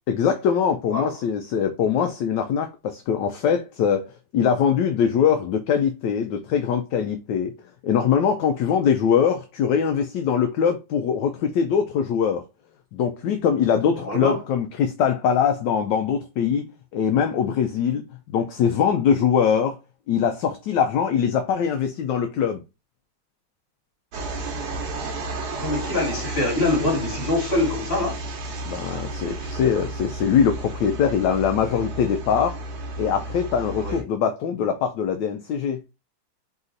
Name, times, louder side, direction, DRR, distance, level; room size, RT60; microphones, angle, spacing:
voice 1, 0.1-4.1 4.3-7.5 7.8-12.4 12.9-16.7 16.9-19.8 20.1-22.6 28.6-32.6 33.0-35.8, left 7 dB, 75° left, 1.1 m, -22 dB
voice 2, 13.9-14.4 25.6-28.2 33.8-34.0, left 2 dB, 30° left, 2.3 m, -24 dB
sound 1, 24.1-34.0, right 2 dB, 60° right, 1.3 m, -32 dB
4.0 x 3.0 x 3.8 m
omnidirectional pair, 2.2 m